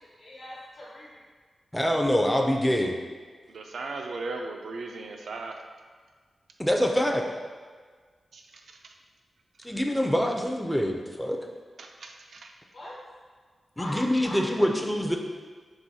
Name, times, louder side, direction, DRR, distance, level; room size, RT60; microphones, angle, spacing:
voice 1, 0.2-1.2 12.7-13.0 13.8-14.5, left 1 dB, 70° left, -8 dB, 1.1 m, -40 dB
voice 2, 1.7-3.0 6.6-7.2 9.6-11.4 13.8-15.2, equal, 5° left, 1 dB, 0.4 m, -25 dB
voice 3, 3.5-5.6 8.3-8.9 11.8-12.5, right 3 dB, 85° right, 3 dB, 0.4 m, -38 dB
4.6 x 3.4 x 2.7 m, 1.5 s
cardioid pair, 75°, 0 cm